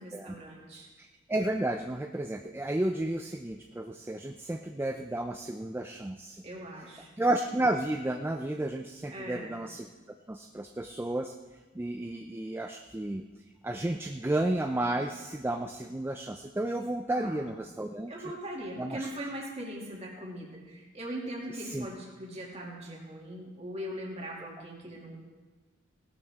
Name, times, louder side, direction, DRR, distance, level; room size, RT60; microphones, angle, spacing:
voice 1, 0.0-0.9 6.4-7.2 9.1-9.6 17.1-17.5 18.1-25.2, right 1 dB, 30° right, -2 dB, 2.4 m, -40 dB
voice 2, 1.0-6.4 7.2-9.9 10.3-11.3 11.7-13.2 13.6-18.1 18.8-19.1 21.5-21.9, right 1 dB, 10° right, 5 dB, 0.4 m, -32 dB
17.0 x 12.0 x 3.6 m, 1.3 s
head